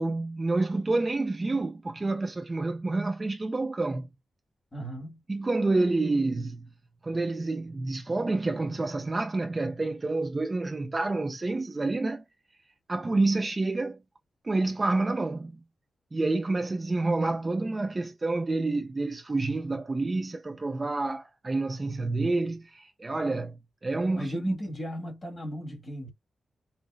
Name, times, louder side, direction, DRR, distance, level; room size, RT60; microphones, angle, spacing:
voice 1, 0.0-4.1 5.3-6.7 7.0-12.2 12.9-14.0 14.4-15.5 16.1-24.6, right 2 dB, 25° right, 0.4 m, -28 dB
voice 2, 4.7-5.2 24.1-26.1, equal, 20° left, 1.5 m, -36 dB
5.3 x 2.0 x 2.4 m
wide cardioid pair, 150°, 0 cm